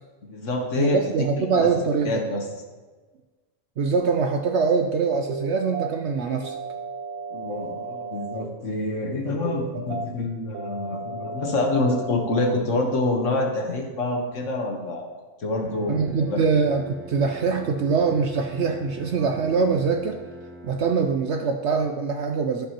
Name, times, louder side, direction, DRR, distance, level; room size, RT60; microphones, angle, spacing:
voice 1, 0.2-1.0 1.5-1.7 2.0-2.4 7.3-15.1 15.4-16.0 16.3-16.4, left 2 dB, 55° left, 2 dB, 1.4 m, -26 dB
voice 2, 0.8-2.2 3.8-6.6 15.9-20.2 20.6-22.6, right 5 dB, 60° right, 4 dB, 0.8 m, -23 dB
sound 1, 5.3-5.9 6.4-8.4 9.4-10.1 10.5-12.5, right 4 dB, 85° right, 1.2 m, -34 dB
Bowed string instrument, 15.6-21.4, right 1 dB, 15° right, 0.5 m, -43 dB
15.5 x 5.4 x 2.9 m, 1.3 s
omnidirectional pair, 1.6 m